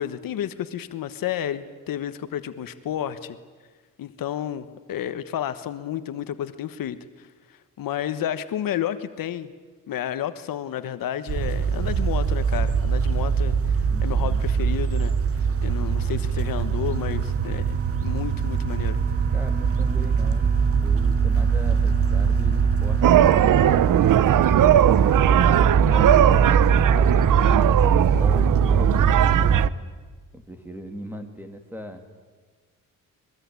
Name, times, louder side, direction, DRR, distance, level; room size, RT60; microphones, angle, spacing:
voice 1, 0.0-3.4 4.0-9.5 9.9-15.1 15.6-17.7 18.0-19.0, left 10 dB, 80° left, 11 dB, 1.3 m, -31 dB
sound 1, 11.3-29.7, right 6 dB, 40° right, 0.9 m, -22 dB
voice 2, 13.9-14.5 19.3-24.3 26.9-29.8 30.3-32.1, equal, 5° right, 6 dB, 2.6 m, -39 dB
sound 2, 15.3-24.0, right 5 dB, 25° right, 1.9 m, -40 dB
sound 3, 23.0-29.7, right 11 dB, 70° right, 0.8 m, -19 dB
24.0 x 22.0 x 9.6 m, 1.4 s
cardioid pair, 130°, 34 cm